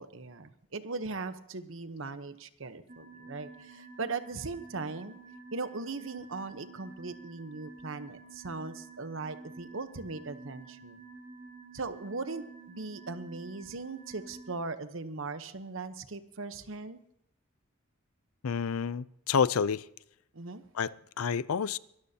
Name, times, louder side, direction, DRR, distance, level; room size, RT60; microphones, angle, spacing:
voice 1, 0.0-5.2 5.5-11.0 11.7-17.0 20.3-20.6, right 3 dB, 65° right, 11 dB, 1.0 m, -39 dB
sound 1, 2.9-14.5, right 3 dB, 40° right, 3.0 m, -50 dB
voice 2, 18.4-19.9 20.7-21.8, left 6 dB, 90° left, 19 dB, 0.5 m, -29 dB
23.0 x 13.5 x 2.8 m, 0.76 s
head